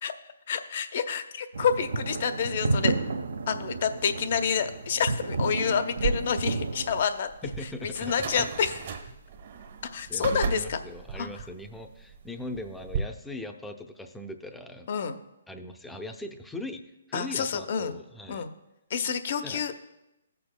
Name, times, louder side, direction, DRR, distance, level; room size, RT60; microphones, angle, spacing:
voice 1, 0.5-2.9 3.5-7.3 7.8-8.7 9.9-10.8 11.2-11.3 14.9-15.2 17.1-17.9 18.3-18.5 18.9-19.7, left 7 dB, 50° left, 10 dB, 0.6 m, -28 dB
sound 1, 1.5-7.0, right 3 dB, 75° right, 0.6 m, -31 dB
sound 2, 6.0-13.0, right 6 dB, 50° right, 1.0 m, -35 dB
voice 2, 7.4-8.5 10.1-15.0 15.5-16.8 17.1-18.5 19.4-19.6, left 1 dB, 5° left, 5 dB, 0.5 m, -40 dB
16.0 x 6.8 x 2.2 m, 0.93 s
hypercardioid pair, 150°, 0 cm